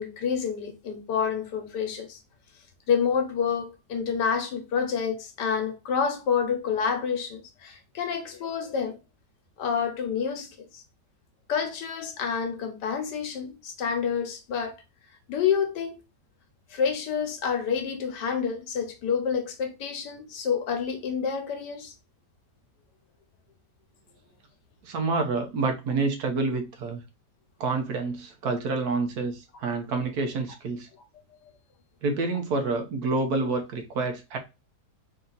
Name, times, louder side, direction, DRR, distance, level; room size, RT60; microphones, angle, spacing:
voice 1, 0.0-2.2 2.9-9.0 9.6-10.8 11.5-14.7 15.3-16.0 16.7-21.9, left 6 dB, 80° left, 1.5 m, -28 dB
voice 2, 24.8-27.0 27.6-30.9 32.0-34.4, right 3 dB, 65° right, 1.3 m, -28 dB
4.0 x 2.8 x 3.8 m
omnidirectional pair, 1.8 m